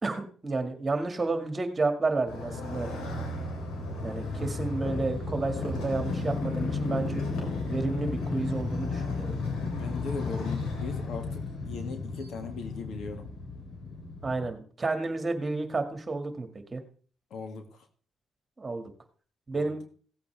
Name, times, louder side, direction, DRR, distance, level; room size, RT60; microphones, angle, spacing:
voice 1, 0.0-2.9 4.0-7.3 7.7-9.4 14.2-16.8 18.6-18.9 19.5-19.8, right 3 dB, 25° right, 6 dB, 2.2 m, -31 dB
Motorcycle, 2.3-14.5, left 3 dB, 85° left, 3.2 m, -33 dB
voice 2, 9.6-13.3 17.3-17.8 19.5-19.8, left 4 dB, 70° left, 5 dB, 2.3 m, -39 dB
16.5 x 8.4 x 3.5 m, 0.43 s
cardioid pair, 90°, 0 cm